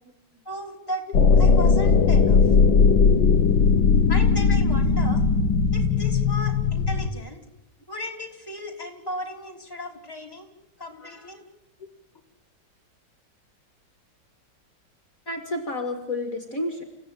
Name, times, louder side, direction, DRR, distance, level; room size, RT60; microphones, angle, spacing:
voice 1, 0.4-1.1 1.4-2.5 4.1-5.2 5.7-7.4 7.9-10.5 10.8-11.4, left 1 dB, 10° left, 0 dB, 3.4 m, -35 dB
sound 1, 1.1-7.1, left 5 dB, 75° left, 1.9 m, -18 dB
voice 2, 11.0-11.3 15.3-16.8, left 2 dB, 45° left, 5 dB, 2.5 m, -31 dB
28.5 x 16.0 x 9.2 m, 0.87 s
omnidirectional pair, 2.1 m